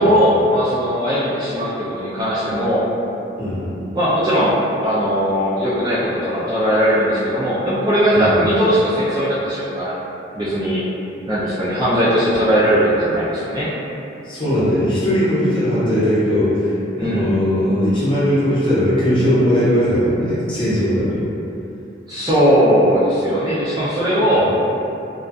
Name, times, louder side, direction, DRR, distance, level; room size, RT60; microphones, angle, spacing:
voice 1, 0.0-2.8 3.9-10.0 10.3-10.8 11.3-13.7 17.0-17.3 22.1-24.5, equal, 20° right, -11 dB, 0.3 m, -18 dB
voice 2, 3.4-3.7 8.1-8.4 14.2-16.7 17.0-21.3 24.4-24.5, equal, 25° left, -12 dB, 0.7 m, -18 dB
2.4 x 2.3 x 2.2 m, 2.7 s
head